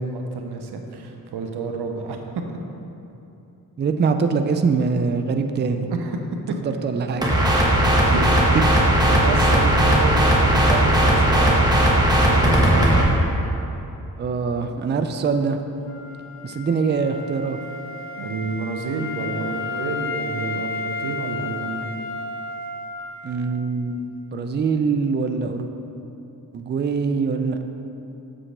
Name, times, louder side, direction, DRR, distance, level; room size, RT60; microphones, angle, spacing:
voice 1, 0.0-2.2 2.5-2.6 5.9-6.2 8.0-8.5 9.1-13.1 18.2-21.9, right 4 dB, 90° right, 4 dB, 0.8 m, -29 dB
voice 2, 3.8-5.9 6.6-7.3 8.5-8.8 14.2-15.6 16.4-17.6 23.2-25.7 26.5-27.6, right 5 dB, 30° right, 7 dB, 0.4 m, -23 dB
sound 1, 7.2-13.0, right 1 dB, 10° right, 1.4 m, -17 dB
Wind instrument woodwind instrument, 15.9-23.6, left 3 dB, 35° left, 0.7 m, -32 dB
7.5 x 7.1 x 3.3 m, 2.9 s
cardioid pair, 80°, 38 cm